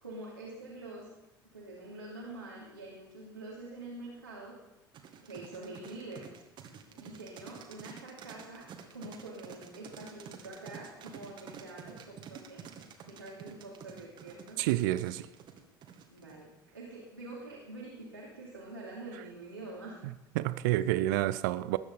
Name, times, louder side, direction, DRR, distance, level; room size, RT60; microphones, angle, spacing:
voice 1, 0.0-1.1 1.5-4.6 5.2-6.3 6.9-12.6 13.1-14.6 16.1-20.0, right 2 dB, 85° right, 2.9 m, -46 dB
sound 1, 4.9-16.4, right 8 dB, 40° right, 2.2 m, -49 dB
voice 2, 14.6-15.3 20.4-21.8, right 15 dB, 60° right, 0.7 m, -29 dB
20.0 x 9.5 x 5.5 m
figure-of-eight pair, 65°, 12 cm